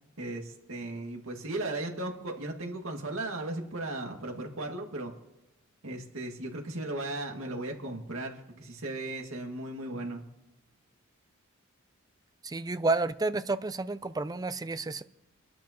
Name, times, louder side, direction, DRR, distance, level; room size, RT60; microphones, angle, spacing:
voice 1, 0.2-5.1 5.8-10.2, right 2 dB, 75° right, 2.0 m, -36 dB
voice 2, 12.4-15.0, right 3 dB, 20° right, 0.4 m, -30 dB
25.5 x 12.0 x 2.9 m
head